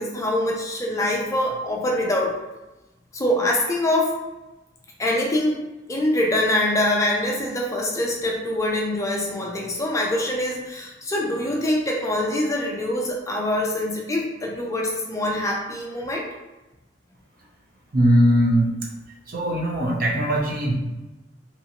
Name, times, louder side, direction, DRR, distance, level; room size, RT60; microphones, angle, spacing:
voice 1, 0.0-2.4 3.1-4.2 5.0-5.6 5.9-16.3, left 1 dB, 15° left, -1 dB, 0.4 m, -24 dB
voice 2, 17.9-18.7 19.3-20.8, equal, 50° right, -2 dB, 0.6 m, -20 dB
2.9 x 2.5 x 2.8 m, 1.0 s
head